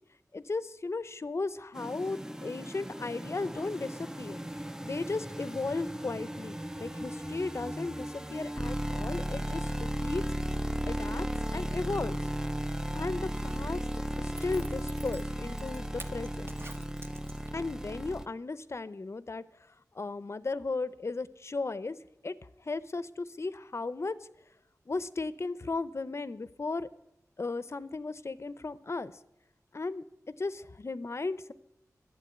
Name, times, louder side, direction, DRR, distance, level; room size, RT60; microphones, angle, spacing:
voice 1, 0.3-4.4 4.8-10.2 10.9-11.3 11.5-12.2 12.9-13.8 14.2-16.5 17.5-19.4 19.9-22.0 22.2-22.3 22.7-24.1 24.9-26.9 27.4-29.1 29.7-30.0 30.4-31.5, left 3 dB, 50° left, 16 dB, 0.6 m, -35 dB
sound 1, 1.7-18.3, equal, 10° right, 0.4 m, -35 dB
Zipper (clothing), 13.1-17.7 18.1-18.2, right 1 dB, 40° right, 1.0 m, -50 dB
11.5 x 7.5 x 9.3 m, 0.84 s
wide cardioid pair, 80°, 6 cm